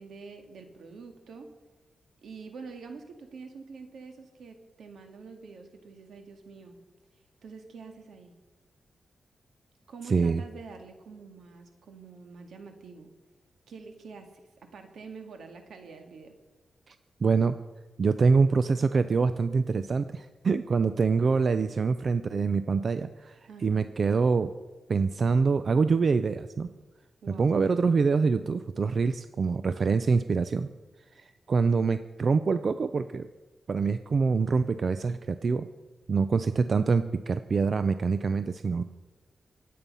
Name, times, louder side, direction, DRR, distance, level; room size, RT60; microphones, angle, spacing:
voice 1, 0.0-1.5 2.2-6.8 7.1-8.3 9.9-13.1 13.7-14.3 14.6-16.4 23.5-23.9 27.2-27.5, right 4 dB, 85° right, 5 dB, 2.0 m, -46 dB
voice 2, 10.1-10.4 16.9-17.0 17.2-17.6 18.0-24.5 24.9-26.7 27.4-30.7 31.2-33.3 33.7-35.7 36.1-38.9, right 4 dB, 55° right, 11 dB, 0.5 m, -25 dB
23.5 x 8.7 x 5.6 m, 1.2 s
cardioid pair, 85°, 0 cm